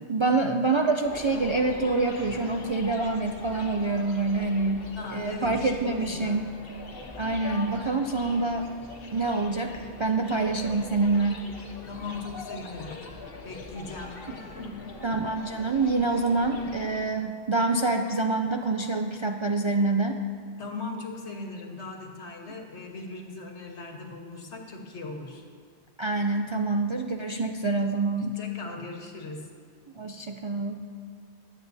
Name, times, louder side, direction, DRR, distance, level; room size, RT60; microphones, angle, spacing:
voice 1, 0.1-4.8 5.1-6.4 7.2-8.6 9.1-11.4 15.0-20.2 26.0-28.4 30.0-30.8, right 3 dB, 50° right, 3 dB, 0.3 m, -26 dB
sound 1, 1.0-17.0, left 3 dB, 60° left, 1.3 m, -42 dB
voice 2, 5.0-6.4 11.9-13.0 13.4-14.8 20.6-25.4 28.4-29.5, left 3 dB, 90° left, 2 dB, 1.6 m, -39 dB
22.5 x 8.3 x 2.7 m, 2.1 s
omnidirectional pair, 1.1 m